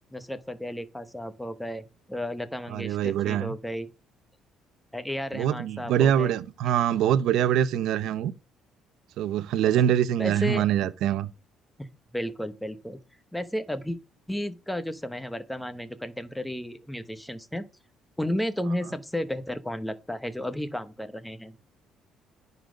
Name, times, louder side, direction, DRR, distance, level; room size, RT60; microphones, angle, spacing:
voice 1, 0.1-3.9 4.9-6.3 10.2-10.6 11.8-11.9 12.1-13.0 13.3-14.0 14.3-17.7 18.2-21.5, equal, 5° left, 0.9 m, -33 dB
voice 2, 2.7-3.5 5.3-8.3 9.2-11.3, right 10 dB, 75° right, 0.6 m, -24 dB
10.0 x 4.0 x 5.1 m
cardioid pair, 90°, 0 cm